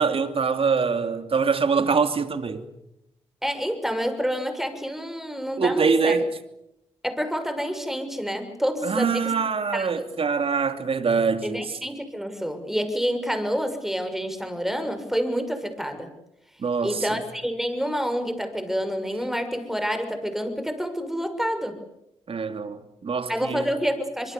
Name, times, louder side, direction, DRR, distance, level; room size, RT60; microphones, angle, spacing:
voice 1, 0.0-2.6 5.6-6.3 8.8-11.8 16.6-17.2 22.3-23.6, right 5 dB, 55° right, 2.8 m, -24 dB
voice 2, 3.4-6.2 7.0-9.3 9.7-10.0 11.4-16.1 16.8-21.8 23.3-24.3, equal, 5° right, 6.5 m, -28 dB
25.0 x 23.0 x 8.3 m
supercardioid pair, 50°, 11 cm